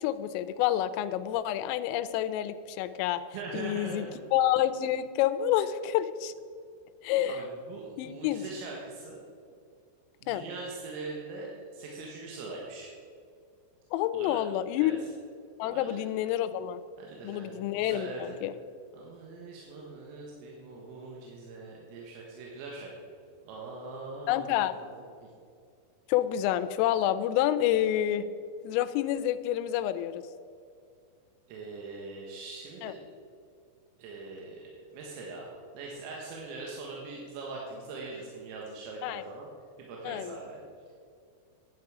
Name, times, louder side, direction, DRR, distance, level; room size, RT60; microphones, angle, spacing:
voice 1, 0.0-3.2 3.5-4.0 4.3-6.3 7.0-7.4 8.0-8.4 10.3-10.4 13.9-15.0 15.6-16.8 17.2-18.5 24.3-24.7 26.1-28.3 28.6-30.2 32.8-32.9 39.0-39.2 40.0-40.4, left 12 dB, 85° left, 11 dB, 3.2 m, -28 dB
voice 2, 3.3-4.1 7.3-9.2 10.2-12.9 14.1-14.4 14.8-15.1 15.7-16.0 17.0-18.4 18.9-22.9 23.5-25.0 31.5-33.0 34.0-39.5 39.8-40.6, right 3 dB, 85° right, -3 dB, 4.0 m, -42 dB
10.5 x 10.5 x 4.8 m, 2.3 s
omnidirectional pair, 5.8 m